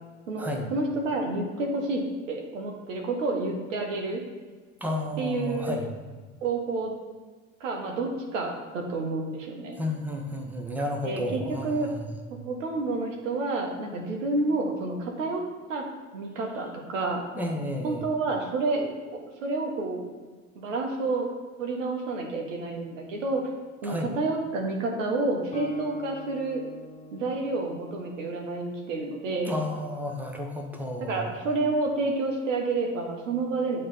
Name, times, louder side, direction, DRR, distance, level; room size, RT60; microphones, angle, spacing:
voice 1, 0.7-4.2 5.2-5.7 6.4-7.0 7.6-9.8 11.0-11.9 12.4-15.4 15.7-15.8 16.1-17.2 17.8-20.1 20.5-21.3 21.6-23.4 23.8-26.6 27.1-29.5 31.0-33.8, right 3 dB, 75° right, 2 dB, 1.1 m, -29 dB
voice 2, 4.8-5.9 9.8-12.1 17.3-18.1 23.8-24.1 29.5-31.3, left 1 dB, 5° right, 1 dB, 1.0 m, -32 dB
Guitar, 25.5-29.2, right 1 dB, 15° left, 0.7 m, -43 dB
8.6 x 3.2 x 4.1 m, 1.4 s
hypercardioid pair, 70°, 39 cm